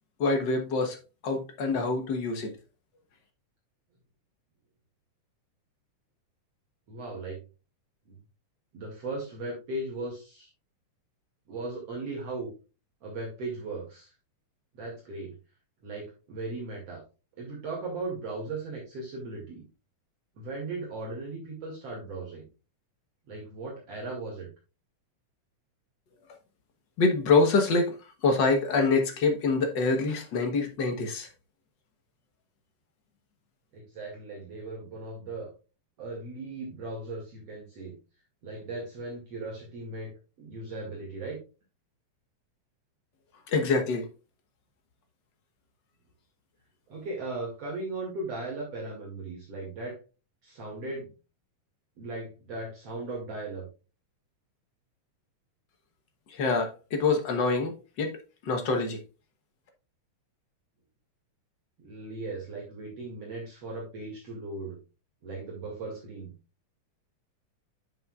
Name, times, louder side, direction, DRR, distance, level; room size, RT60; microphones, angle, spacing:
voice 1, 0.2-1.0 1.2-2.5 27.0-31.3 43.5-44.1 56.3-59.0, left 3 dB, 70° left, 1.0 m, -26 dB
voice 2, 6.9-7.4 8.1-8.2 8.7-10.5 11.5-12.5 13.0-14.1 14.7-15.4 15.8-17.0 17.4-19.6 20.4-22.4 23.3-24.5 33.7-35.5 36.0-37.9 38.4-40.1 40.4-41.4 46.9-50.0 50.4-51.1 52.0-53.7 61.8-64.8 65.2-66.3, right 2 dB, 50° right, 3.0 m, -37 dB
9.4 x 7.1 x 2.4 m
omnidirectional pair, 3.7 m